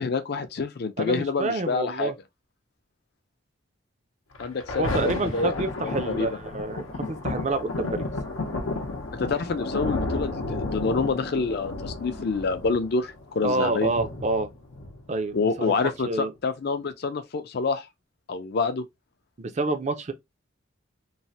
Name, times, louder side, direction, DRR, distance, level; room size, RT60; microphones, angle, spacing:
voice 1, 0.0-2.1 4.4-6.3 9.1-13.9 15.3-17.9 18.3-18.8, left 4 dB, 50° left, 0.4 m, -27 dB
voice 2, 1.0-2.1 4.8-8.1 13.4-14.5 15.1-15.7 16.1-16.3 19.4-20.1, right 2 dB, 35° right, 0.4 m, -28 dB
Thunder, 4.3-15.3 16.0-16.1, left 2 dB, 90° left, 0.7 m, -32 dB
3.1 x 2.1 x 2.6 m
head